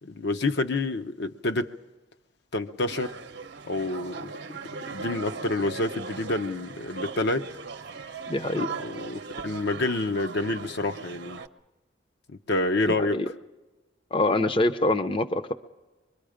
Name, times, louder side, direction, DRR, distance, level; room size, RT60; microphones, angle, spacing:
voice 1, 0.0-1.7 2.5-3.1 3.6-4.3 4.9-7.4 8.8-11.4 12.3-13.2, left 2 dB, 60° left, 5 dB, 0.7 m, -28 dB
sound 1, 2.9-11.5, right 4 dB, 60° right, 0.8 m, -39 dB
voice 2, 8.3-8.7 12.9-13.3 14.1-15.5, left 2 dB, 30° left, 9 dB, 0.6 m, -25 dB
25.0 x 23.0 x 5.1 m, 1.1 s
head